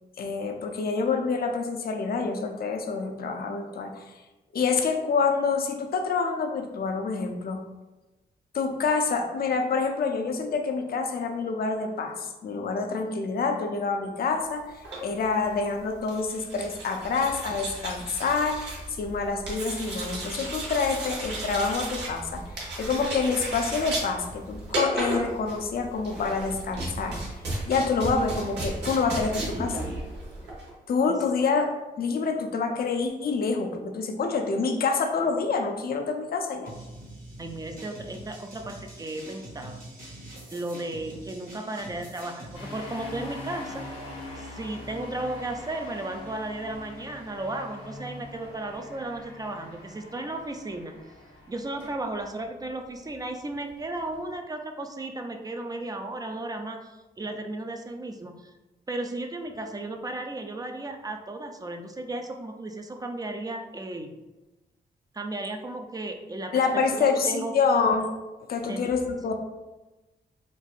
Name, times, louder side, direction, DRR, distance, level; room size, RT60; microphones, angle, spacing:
voice 1, 0.2-4.0 4.5-7.6 8.5-14.7 15.0-22.4 22.8-27.2 27.7-29.9 30.9-36.7 66.5-68.1 68.5-69.3, left 4 dB, 60° left, 4 dB, 0.5 m, -27 dB
sound 1, 14.7-30.7, right 2 dB, 80° right, 1.1 m, -35 dB
Rolling Break, 36.7-42.6, right 1 dB, 55° right, 1.4 m, -44 dB
voice 2, 37.4-39.8 40.5-43.8 44.4-50.9 51.5-58.5 58.9-64.2 65.1-66.6 66.9-67.5 68.6-68.9, right 2 dB, 20° right, 5 dB, 0.4 m, -35 dB
sound 2, 42.5-54.3, left 2 dB, 90° left, 1.0 m, -43 dB
4.4 x 2.5 x 2.4 m, 1.1 s
cardioid pair, 75°, 17 cm